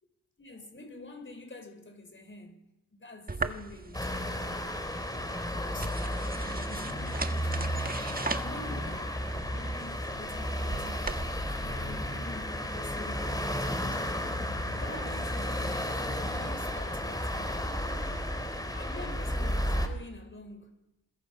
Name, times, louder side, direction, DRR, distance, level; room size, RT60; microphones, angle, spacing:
voice 1, 0.4-6.0 6.5-7.7 8.3-14.2 14.7-17.8 18.7-20.7, left 2 dB, 35° left, 5.4 m, -47 dB
sound 1, 3.3-11.2, right 3 dB, 25° right, 1.5 m, -39 dB
sound 2, 3.9-19.9, equal, 10° left, 3.6 m, -33 dB
27.5 x 22.5 x 5.7 m
cardioid pair, 65°, 36 cm